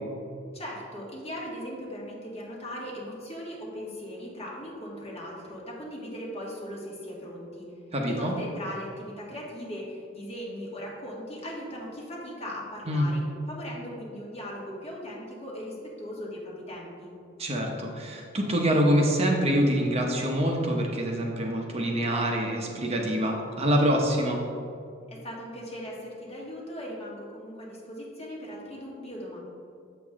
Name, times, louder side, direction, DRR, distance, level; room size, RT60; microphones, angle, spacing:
voice 1, 0.5-7.7 8.1-17.1 25.1-29.4, equal, 35° left, -4 dB, 1.8 m, -39 dB
voice 2, 7.9-8.3 12.9-13.1 17.4-24.4, equal, 35° right, 0 dB, 0.8 m, -25 dB
7.6 x 6.8 x 3.6 m, 2.4 s
head